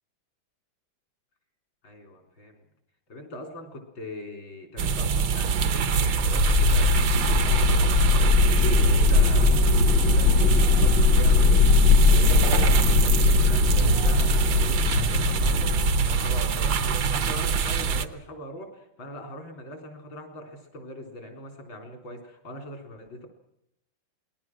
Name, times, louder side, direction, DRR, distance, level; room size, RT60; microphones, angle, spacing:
voice 1, 1.8-2.6 3.1-23.3, equal, 90° left, 4 dB, 4.8 m, -41 dB
sound 1, 4.8-18.1, right 5 dB, 75° right, 1.7 m, -24 dB
sound 2, 6.2-16.8, left 5 dB, 70° left, 1.7 m, -21 dB
27.0 x 20.5 x 6.2 m, 0.81 s
omnidirectional pair, 2.1 m